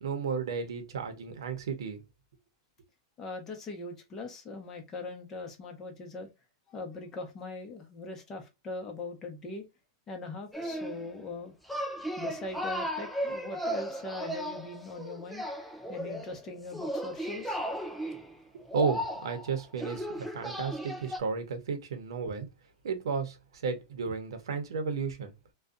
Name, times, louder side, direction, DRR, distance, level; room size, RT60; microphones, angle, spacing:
voice 1, 0.0-2.0 18.7-22.5 22.8-23.4 23.6-25.3, right 5 dB, 90° right, 0.8 m, -33 dB
voice 2, 3.2-6.3 6.7-9.6 10.1-11.5 12.2-15.4 15.9-17.6, left 3 dB, 20° left, 0.8 m, -41 dB
sound 1, 10.5-11.2 11.7-21.2, equal, ahead, 0.4 m, -36 dB
2.6 x 2.3 x 2.4 m
supercardioid pair, 160°, 2 cm